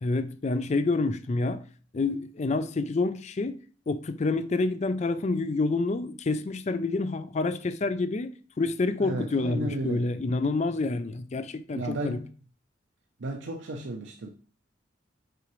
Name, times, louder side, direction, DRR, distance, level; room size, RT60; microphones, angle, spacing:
voice 1, 0.0-1.6 1.9-8.3 8.6-12.2, left 3 dB, 35° left, 0.4 m, -28 dB
voice 2, 9.0-10.1 11.7-12.3 13.2-14.3, right 1 dB, 75° right, 0.6 m, -33 dB
6.8 x 4.9 x 3.1 m
head